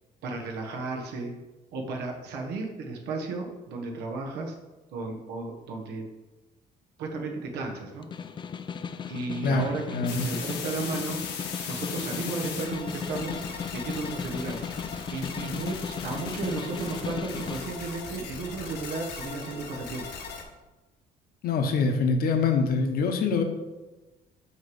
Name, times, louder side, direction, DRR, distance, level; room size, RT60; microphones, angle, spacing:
voice 1, 0.2-1.3 1.7-4.5 4.9-6.0 7.0-8.1 9.1-11.2 11.7-13.4 13.7-14.6 15.1-20.1, right 3 dB, 80° right, 2 dB, 1.0 m, -34 dB
Snare drum, 7.9-17.7, left 6 dB, 30° left, 0.4 m, -36 dB
voice 2, 9.9-10.3 21.4-23.4, left 4 dB, 60° left, 5 dB, 0.9 m, -24 dB
sound 1, 10.1-20.4, left 5 dB, 80° left, 1.1 m, -38 dB
6.3 x 3.1 x 5.3 m, 1.1 s
cardioid pair, 110°, 17 cm